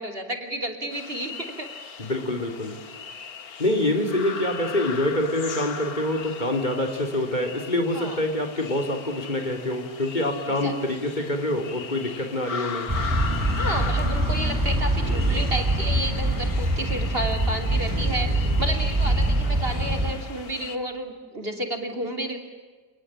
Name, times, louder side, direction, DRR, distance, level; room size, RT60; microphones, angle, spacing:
voice 1, 0.0-1.7 7.9-8.2 10.5-11.0 13.5-22.4, right 1 dB, 35° right, 5 dB, 3.2 m, -31 dB
sound 1, 0.9-20.8, left 6 dB, 65° left, 2.0 m, -38 dB
voice 2, 2.0-2.8 3.6-12.9, left 1 dB, 25° left, 4 dB, 3.0 m, -26 dB
sound 2, 12.9-20.1, right 1 dB, 10° right, 4.4 m, -24 dB
29.5 x 20.0 x 8.8 m, 1.4 s
omnidirectional pair, 1.7 m